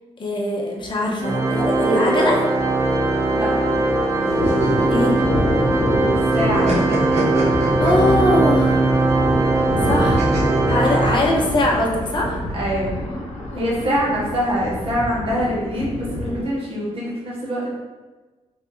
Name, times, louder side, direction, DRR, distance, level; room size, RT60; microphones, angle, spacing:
voice 1, 0.2-2.5 4.9-5.2 7.4-8.9 9.8-10.3 10.7-12.4 13.5-14.0, left 1 dB, 40° left, -1 dB, 0.8 m, -22 dB
Thunder, 0.8-1.0 1.3-1.4 1.7-3.2 3.4-16.4, left 1 dB, 75° left, 0.9 m, -27 dB
Organ, 1.2-11.8, right 2 dB, 25° right, 0.4 m, -20 dB
voice 2, 3.3-3.8 6.1-6.8 12.5-13.0 13.5-17.7, equal, 50° right, -6 dB, 1.3 m, -24 dB
sound 1, 4.3-6.0 6.3-8.5 10.2-11.6, right 2 dB, 70° right, 1.2 m, -27 dB
3.3 x 2.7 x 3.8 m, 1.2 s
cardioid pair, 110°, 12 cm